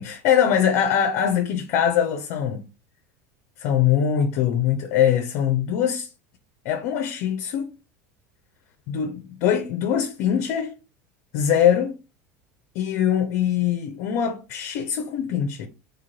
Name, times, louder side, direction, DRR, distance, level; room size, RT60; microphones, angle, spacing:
voice 1, 0.0-2.6 3.6-6.1 6.6-7.7 8.9-10.7 11.3-11.9 12.7-15.7, left 9 dB, 65° left, 0.6 m, -22 dB
3.6 x 3.4 x 2.8 m
hypercardioid pair, 85°, 8 cm